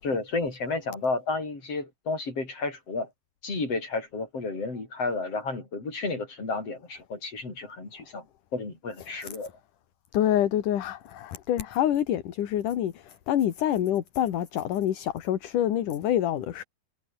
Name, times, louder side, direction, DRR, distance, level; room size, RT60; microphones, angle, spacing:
voice 1, 0.0-3.1 3.4-8.2 8.5-9.5, left 3 dB, 40° left, 7.9 m, -31 dB
voice 2, 10.1-16.6, left 11 dB, 65° left, 3.1 m, -26 dB
omnidirectional pair, 4.2 m